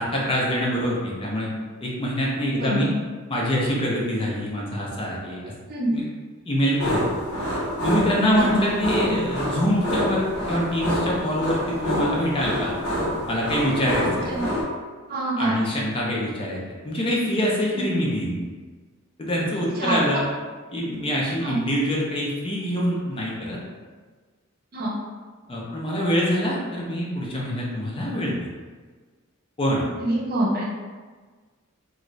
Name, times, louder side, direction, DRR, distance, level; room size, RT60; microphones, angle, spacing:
voice 1, 0.0-1.5 1.8-2.9 3.3-5.5 5.9-6.0 6.5-7.0 7.8-10.2 10.5-12.7 13.3-14.3 15.4-18.4 19.2-20.3 20.7-23.6 25.5-28.4 29.6-29.8, equal, 25° left, -4 dB, 0.5 m, -25 dB
voice 2, 2.5-2.9 5.7-5.9 14.3-14.4 15.1-15.6 17.7-17.8 19.8-20.2 21.4-21.6 24.7-25.0 30.0-30.6, right 1 dB, 45° right, -4 dB, 0.6 m, -25 dB
sound 1, 6.8-14.6, equal, 80° left, 1.0 m, -27 dB
2.5 x 2.3 x 3.1 m, 1.4 s
head